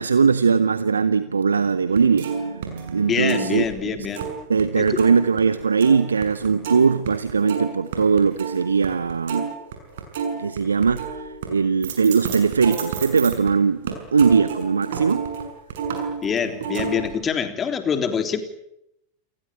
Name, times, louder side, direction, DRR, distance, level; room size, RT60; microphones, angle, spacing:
voice 1, 0.0-3.6 4.5-9.5 10.4-15.2, right 5 dB, 75° right, 14 dB, 1.0 m, -20 dB
sound 1, 1.9-4.6 4.9-13.5 13.9-17.2, right 6 dB, 55° right, 6.9 m, -31 dB
voice 2, 3.1-4.3 4.8-5.0 16.2-18.4, left 7 dB, 25° left, 8 dB, 3.6 m, -25 dB
29.0 x 20.5 x 9.2 m, 0.81 s
figure-of-eight pair, 90°, 0 cm